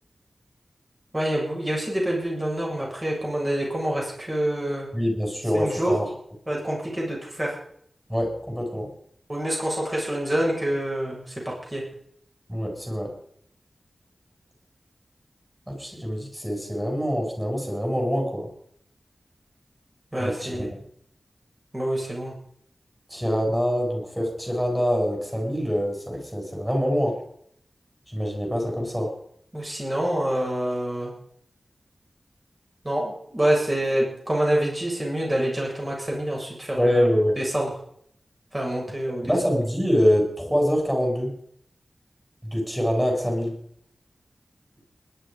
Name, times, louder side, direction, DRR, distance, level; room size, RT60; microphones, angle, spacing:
voice 1, 1.1-4.9 5.5-6.0 6.5-7.5 9.3-11.9 20.1-20.7 21.7-22.3 29.5-31.1 32.8-37.1 37.4-37.7 38.5-39.3, right 1 dB, 25° right, -2 dB, 7.6 m, -26 dB
voice 2, 4.9-6.0 8.1-8.9 12.5-13.1 15.7-18.5 20.2-20.7 23.1-27.2 28.1-29.1 36.8-37.4 39.2-41.3 42.4-43.5, equal, 5° right, 1 dB, 7.8 m, -25 dB
20.5 x 11.5 x 5.3 m, 0.66 s
wide cardioid pair, 85°, 0 cm